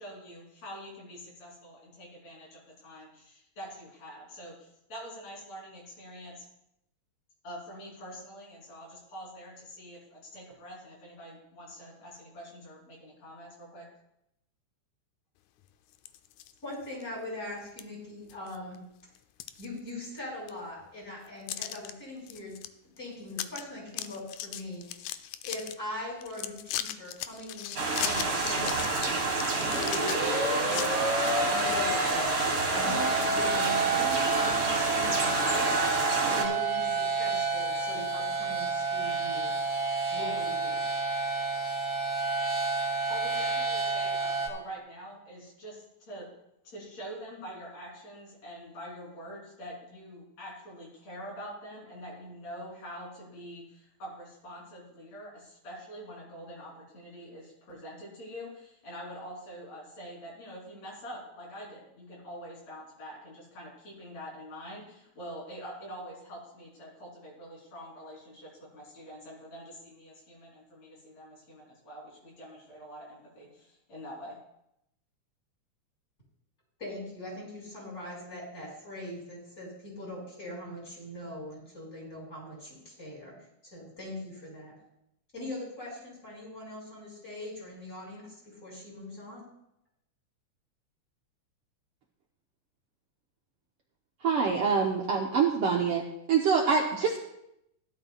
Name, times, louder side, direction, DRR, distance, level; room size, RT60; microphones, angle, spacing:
voice 1, 0.0-6.5 7.4-13.9 43.1-46.3 46.6-74.4, equal, 65° left, -4 dB, 4.6 m, -45 dB
sound 1, 15.9-16.5 17.0-17.1 17.8-17.9 18.3-18.8 19.1-20.2 20.5-20.6 21.5-21.9 22.3-22.7 23.0-23.1 23.3-23.6 23.9-25.7 26.2-30.9, left 12 dB, 90° left, 2.0 m, -37 dB
voice 2, 16.6-18.8 19.6-22.6 23.0-25.0 25.4-32.3 32.7-35.7 36.2-39.5 40.1-40.8 76.8-83.3 83.7-84.7 85.3-89.4, left 1 dB, 25° left, -5 dB, 5.4 m, -41 dB
sound 2, 27.8-36.4, right 3 dB, 35° right, 1.4 m, -29 dB
sound 3, 29.5-44.5, right 3 dB, 5° right, 2.1 m, -30 dB
voice 3, 94.2-96.0 96.3-97.2, right 5 dB, 65° right, 0 dB, 1.5 m, -25 dB
16.5 x 12.0 x 2.3 m, 0.80 s
omnidirectional pair, 3.3 m